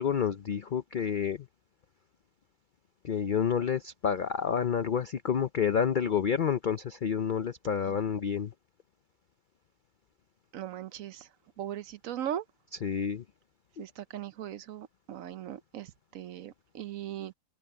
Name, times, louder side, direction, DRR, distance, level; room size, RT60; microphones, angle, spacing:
voice 1, 0.0-1.5 3.0-8.5 12.8-13.2 13.8-13.9, left 7 dB, 85° left, 0.4 m, -29 dB
voice 2, 10.5-11.3 11.6-12.4 13.8-17.3, right 10 dB, 65° right, 1.0 m, -39 dB
omnidirectional pair, 1.6 m